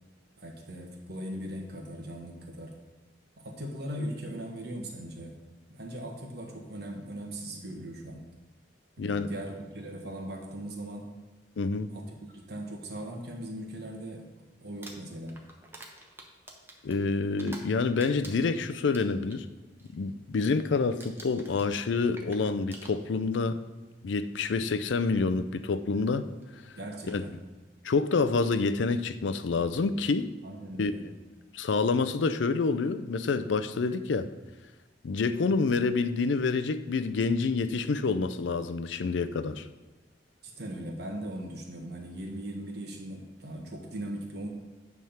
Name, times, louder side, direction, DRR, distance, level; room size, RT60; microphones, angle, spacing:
voice 1, 0.4-2.7 3.4-5.4 5.7-8.2 9.0-11.1 11.9-14.2 14.6-15.4 26.7-27.3 30.4-31.0 40.4-44.5, right 1 dB, 60° right, 1 dB, 1.4 m, -39 dB
voice 2, 9.0-9.3 11.6-11.9 16.8-19.5 19.9-23.6 24.0-26.2 27.1-27.2 27.8-30.3 30.8-30.9 31.5-34.3 35.0-39.6, left 4 dB, 80° left, 11 dB, 0.5 m, -27 dB
Crumpling crinkling, 14.7-17.7 18.0-19.4 19.8-20.1 20.4-20.7 21.0-23.4 24.3-24.4 26.4-26.5 26.9-27.2, right 1 dB, 10° right, 0.8 m, -49 dB
9.2 x 3.6 x 5.7 m, 1.2 s
head